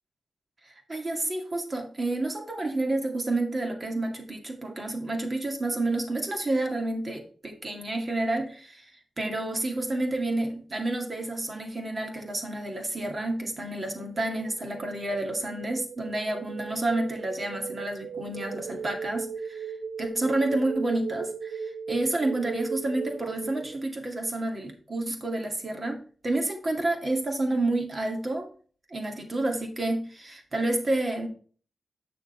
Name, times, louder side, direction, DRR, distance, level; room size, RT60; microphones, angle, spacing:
voice 1, 0.6-8.9 9.2-19.7 20.0-28.5 28.9-31.3, right 2 dB, 40° right, 3 dB, 2.1 m, -29 dB
sound 1, 13.9-23.9, right 5 dB, 75° right, 0.4 m, -37 dB
7.8 x 6.6 x 3.2 m, 0.42 s
cardioid pair, 70°, 0 cm